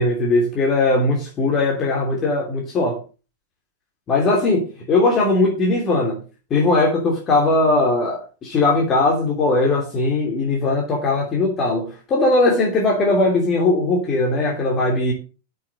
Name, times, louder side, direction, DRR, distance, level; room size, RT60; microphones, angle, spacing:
voice 1, 0.0-3.0 4.1-6.2 6.5-15.1, left 2 dB, 30° left, -1 dB, 2.9 m, -19 dB
8.4 x 6.6 x 6.3 m, 0.34 s
figure-of-eight pair, 90°, 0 cm